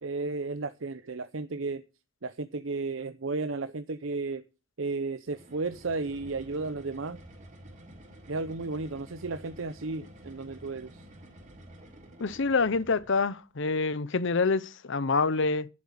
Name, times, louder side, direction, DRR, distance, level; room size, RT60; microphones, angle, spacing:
voice 1, 0.0-1.8 2.2-4.4 4.8-7.2 8.3-11.0, right 3 dB, 70° right, 0.8 m, -33 dB
sound 1, 5.3-13.3, right 1 dB, 40° right, 4.0 m, -50 dB
voice 2, 12.2-15.7, left 4 dB, 65° left, 0.8 m, -26 dB
11.0 x 7.6 x 7.4 m
head